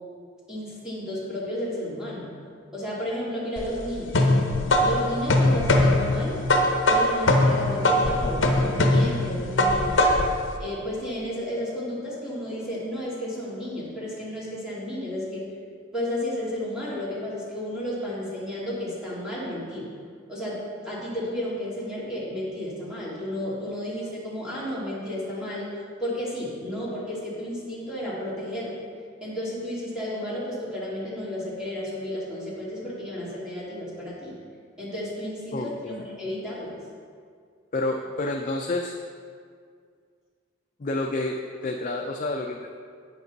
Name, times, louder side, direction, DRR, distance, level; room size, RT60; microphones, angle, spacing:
voice 1, 0.5-2.3 2.7-4.3 4.8-6.4 6.9-10.1 10.6-15.5 15.9-19.9 20.3-25.7 26.0-28.7 29.2-34.3 34.8-36.8, equal, 5° right, -9 dB, 2.4 m, -32 dB
sound 1, 3.6-10.4, left 1 dB, 65° left, 0.8 m, -21 dB
voice 2, 35.5-36.0 37.7-39.0 40.8-42.8, left 2 dB, 40° left, 2 dB, 0.4 m, -29 dB
8.9 x 7.7 x 4.0 m, 2.1 s
head